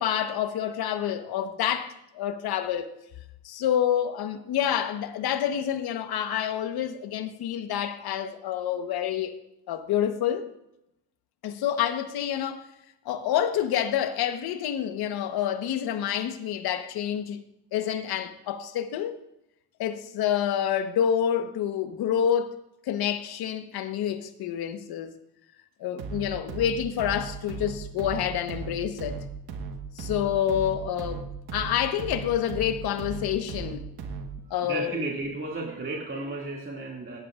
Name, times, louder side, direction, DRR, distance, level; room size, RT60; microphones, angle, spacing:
voice 1, 0.0-2.9 3.4-9.4 9.7-10.5 11.4-12.7 13.0-17.4 17.7-19.2 19.8-22.6 22.9-25.1 25.8-29.2 30.0-33.8 34.5-35.0, left 9 dB, 80° left, 1.3 m, -28 dB
sound 1, 26.0-34.5, right 5 dB, 85° right, 1.5 m, -37 dB
voice 2, 34.6-37.2, right 3 dB, 35° right, 2.4 m, -33 dB
17.5 x 11.0 x 2.5 m
cardioid pair, 75°, 37 cm